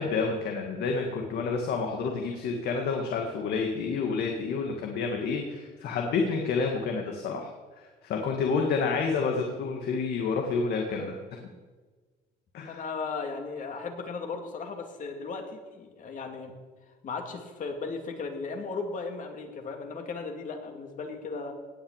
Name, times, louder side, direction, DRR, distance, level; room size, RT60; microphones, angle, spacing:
voice 1, 0.0-7.5 7.8-11.5 12.5-12.9, left 4 dB, 70° left, 2 dB, 1.9 m, -29 dB
voice 2, 12.7-16.5 17.0-21.5, left 4 dB, 50° left, 4 dB, 2.6 m, -36 dB
18.0 x 6.3 x 8.9 m, 1.4 s
cardioid pair, 110°, 17 cm